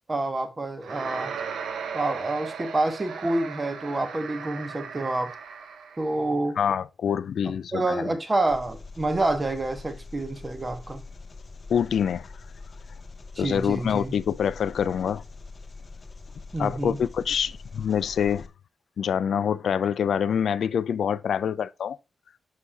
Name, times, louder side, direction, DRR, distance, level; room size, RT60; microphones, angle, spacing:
voice 1, 0.1-1.3 1.9-5.3 6.0-6.6 7.7-11.0 13.4-14.1 16.5-17.0, right 2 dB, 20° right, 0.9 m, -28 dB
sound 1, 0.8-6.2, right 6 dB, 80° right, 0.8 m, -36 dB
voice 2, 6.6-8.0 11.7-12.3 13.4-15.2 16.6-18.5 19.0-22.0, left 8 dB, 70° left, 0.3 m, -26 dB
Engine, 8.5-18.5, left 3 dB, 25° left, 0.7 m, -43 dB
6.2 x 5.6 x 3.4 m
wide cardioid pair, 170°, 0 cm